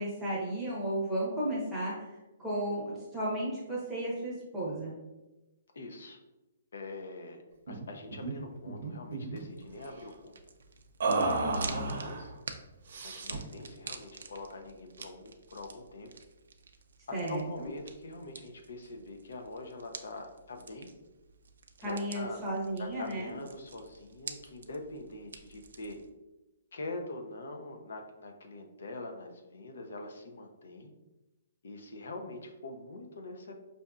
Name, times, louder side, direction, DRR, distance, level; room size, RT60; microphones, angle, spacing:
voice 1, 0.0-1.9 2.4-5.0 11.3-11.8 17.1-17.7 21.8-23.3, right 1 dB, ahead, -9 dB, 0.8 m, -34 dB
voice 2, 5.7-6.2 6.7-10.4 11.2-12.3 13.0-16.1 17.1-20.9 21.8-22.5 22.8-26.0 26.7-30.9 31.6-33.5, left 2 dB, 70° left, 4 dB, 0.6 m, -44 dB
sound 1, 7.7-7.9 8.1-8.3 8.7-9.4 11.0-12.2 12.9-13.5, right 3 dB, 45° right, 0.7 m, -32 dB
sound 2, 9.4-26.1, right 5 dB, 90° right, 0.4 m, -49 dB
5.4 x 2.6 x 2.3 m, 1.0 s
hypercardioid pair, 180°, 0 cm